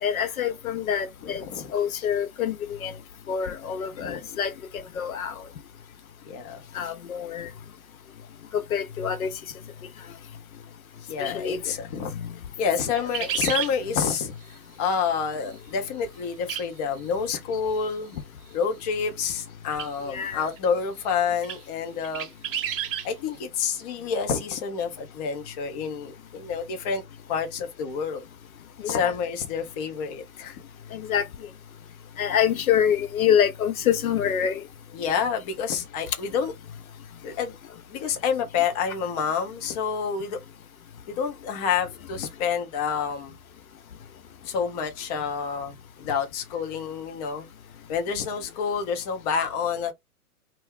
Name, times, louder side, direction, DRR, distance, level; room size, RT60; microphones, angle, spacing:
voice 1, 0.0-1.4 1.7-2.9 3.3-5.4 6.7-7.5 8.5-9.3 11.2-11.6 12.2-12.3 13.0-13.1 20.1-20.5 28.8-29.1 30.9-31.3 32.2-34.6, left 8 dB, 70° left, 0.6 m, -26 dB
voice 2, 1.2-2.1 4.0-4.2 6.3-6.6 11.1-12.1 12.6-14.3 14.8-18.2 18.5-22.3 23.0-27.0 27.3-28.3 28.9-30.6 34.9-36.5 37.2-37.5 37.9-40.4 41.2-43.3 44.4-47.5 47.9-49.9, left 6 dB, 25° left, 0.6 m, -28 dB
sound 1, 13.0-13.7 16.5-16.6 17.0-17.1 19.7-19.9 20.6-20.7 21.4-21.6 22.0-23.1, right 9 dB, 40° right, 0.5 m, -30 dB
2.3 x 2.1 x 3.5 m
figure-of-eight pair, 115°, 44 cm